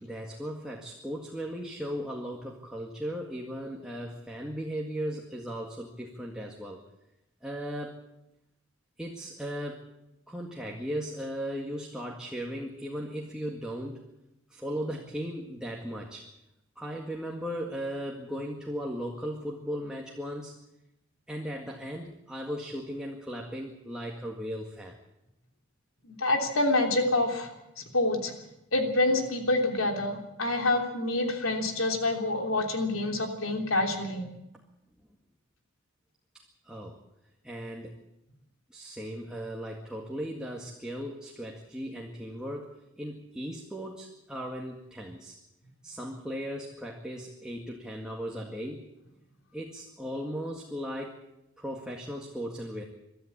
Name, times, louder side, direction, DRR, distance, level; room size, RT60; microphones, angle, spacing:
voice 1, 0.0-6.8 7.4-8.0 9.0-9.8 10.3-14.0 14.5-16.3 16.8-20.5 21.3-25.0 36.6-37.0 37.4-38.0 38.7-42.7 43.0-45.4 45.8-48.8 49.5-51.2 51.6-52.8, equal, 5° right, -1 dB, 1.9 m, -37 dB
voice 2, 26.0-27.5 27.9-28.3 28.7-34.2, left 2 dB, 80° left, 3 dB, 3.3 m, -27 dB
23.5 x 13.0 x 8.7 m, 0.90 s
head